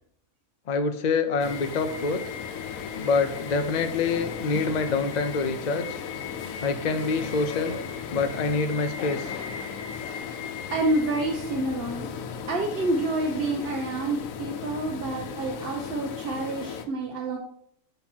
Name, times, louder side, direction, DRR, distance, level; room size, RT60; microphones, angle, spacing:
voice 1, 0.7-2.2 3.0-6.0 6.6-7.7 8.1-9.3, left 4 dB, 65° left, 8 dB, 0.4 m, -26 dB
sound 1, 1.4-16.8, left 7 dB, 90° left, 1.1 m, -36 dB
voice 2, 10.7-12.1 12.5-17.4, right 2 dB, 50° right, 1 dB, 1.0 m, -28 dB
6.6 x 5.7 x 4.4 m, 0.71 s
omnidirectional pair, 1.4 m